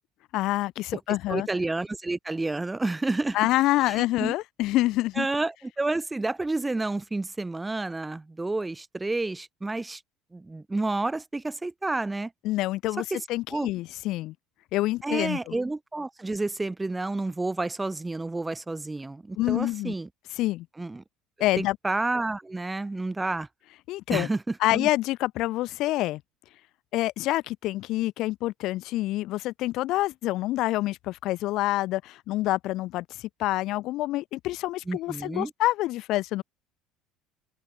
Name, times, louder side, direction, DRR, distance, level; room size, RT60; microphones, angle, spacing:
voice 1, 0.3-1.5 3.3-5.3 12.4-14.3 14.7-15.6 19.4-19.9 20.4-20.7 21.4-21.8 23.9-24.3 24.6-26.2 26.9-36.4, left 17 dB, 60° left, 0.8 m, -27 dB
voice 2, 1.3-3.4 3.8-4.3 5.2-10.0 10.3-12.3 13.1-13.2 13.5-13.7 15.0-20.1 20.8-21.0 21.6-23.5 24.1-24.9 34.9-35.5, right 2 dB, 10° right, 0.7 m, -30 dB
open air
cardioid pair, 145°, 0 cm